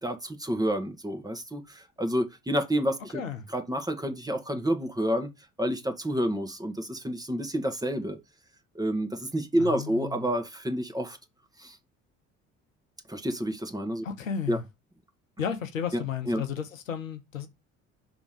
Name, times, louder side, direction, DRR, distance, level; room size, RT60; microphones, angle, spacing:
voice 1, 0.0-3.2 3.5-5.3 5.6-8.2 8.7-11.2 11.6-11.8 13.1-14.0 14.5-14.6 16.3-16.4, equal, 10° right, 1.5 m, -29 dB
voice 2, 9.6-10.2 14.0-14.6 15.4-17.5, left 7 dB, 85° left, 0.9 m, -33 dB
6.0 x 3.6 x 5.0 m
figure-of-eight pair, 55°, 38 cm